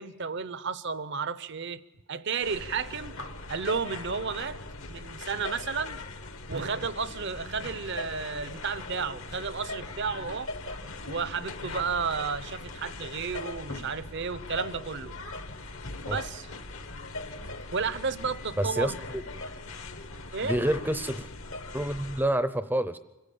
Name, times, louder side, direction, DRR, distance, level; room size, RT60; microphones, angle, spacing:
voice 1, 0.0-1.8 2.1-3.2 3.5-4.6 4.9-6.0 6.5-10.5 11.1-15.1 16.1-16.5 17.7-19.0 20.3-20.6, right 5 dB, 50° right, 0.8 m, -32 dB
sound 1, 2.4-22.3, left 2 dB, 65° left, 1.5 m, -40 dB
voice 2, 18.6-19.2 20.4-21.3 21.7-23.0, right 1 dB, 10° right, 0.7 m, -28 dB
25.5 x 15.5 x 8.5 m
head